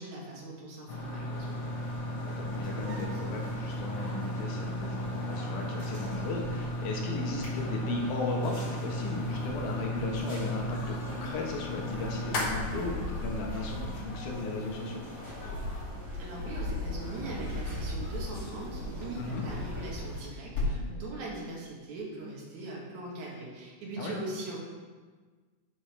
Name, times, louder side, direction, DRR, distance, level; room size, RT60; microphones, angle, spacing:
voice 1, 0.0-1.6 16.2-24.6, right 2 dB, 75° right, -4 dB, 3.3 m, -40 dB
sound 1, 0.9-15.8, equal, 55° left, 1.7 m, -36 dB
sound 2, 1.3-20.2, equal, 20° left, 2.8 m, -46 dB
voice 2, 2.1-15.0 19.2-19.4 24.0-24.2, left 2 dB, 80° left, 0 dB, 2.8 m, -36 dB
sound 3, 2.8-4.9 5.2-6.8 7.2-8.2 8.7-21.0, left 2 dB, 40° left, 2.7 m, -39 dB
11.0 x 6.9 x 3.3 m, 1.4 s
omnidirectional pair, 3.5 m